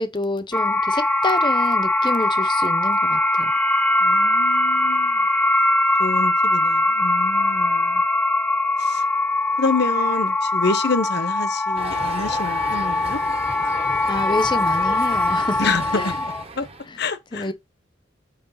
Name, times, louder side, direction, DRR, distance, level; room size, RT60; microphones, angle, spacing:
voice 1, 0.0-3.5 14.1-15.6 15.9-16.2 16.9-17.0 17.3-17.5, left 2 dB, 25° left, 0.8 m, -28 dB
sound 1, 0.5-16.4, left 2 dB, 5° left, 0.3 m, -21 dB
voice 2, 4.0-5.3 6.0-8.0 8.8-9.0 9.6-13.2 15.6-16.1 16.5-16.7 17.0-17.5, left 3 dB, 55° left, 1.0 m, -27 dB
sound 2, 11.8-16.9, right 3 dB, 30° right, 1.1 m, -35 dB
8.7 x 3.2 x 5.6 m
head